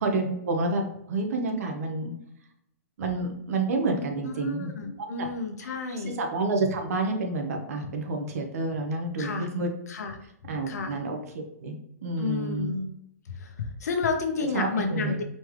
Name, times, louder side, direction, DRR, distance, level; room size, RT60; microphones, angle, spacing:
voice 1, 0.0-0.8 1.1-2.1 3.0-4.7 5.0-5.3 5.6-5.7 6.0-9.7 10.4-11.7 12.0-12.7 14.5-15.2, right 3 dB, 65° right, 3 dB, 1.0 m, -29 dB
voice 2, 4.3-6.2 9.2-9.5 9.9-10.1 10.7-10.9 12.2-12.9 13.3-15.2, left 4 dB, 75° left, 5 dB, 0.9 m, -30 dB
4.3 x 3.3 x 3.0 m, 0.78 s
hypercardioid pair, 150°, 9 cm